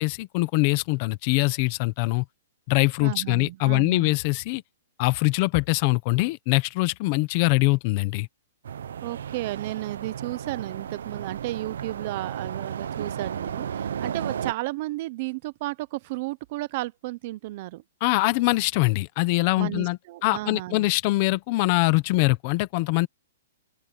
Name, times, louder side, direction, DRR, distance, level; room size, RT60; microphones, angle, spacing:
voice 1, 0.0-2.2 2.7-4.6 5.0-8.3 18.0-23.1, left 22 dB, 25° left, 0.8 m, -23 dB
voice 2, 3.0-4.1 9.0-17.8 19.6-20.9, right 18 dB, 30° right, 0.7 m, -33 dB
sound 1, 8.6-14.5, right 8 dB, 65° right, 0.7 m, -34 dB
open air
hypercardioid pair, 180°, 0 cm